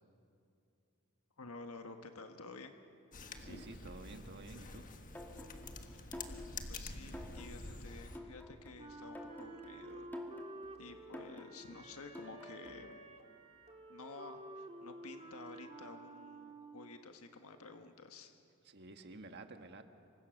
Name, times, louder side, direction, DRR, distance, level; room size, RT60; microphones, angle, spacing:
voice 1, 1.4-2.7 6.7-10.1 10.8-13.0 13.9-18.4, left 3 dB, 90° left, 6 dB, 1.4 m, -52 dB
sound 1, 3.1-8.2, left 3 dB, 40° left, 1.4 m, -48 dB
voice 2, 3.4-4.9 7.6-7.9 18.6-19.8, right 2 dB, 50° right, 6 dB, 1.5 m, -51 dB
sound 2, 5.1-13.0, left 1 dB, 10° left, 2.1 m, -51 dB
Wind instrument woodwind instrument, 8.8-16.9, right 2 dB, 30° right, 2.0 m, -51 dB
27.5 x 24.0 x 6.5 m, 2.5 s
head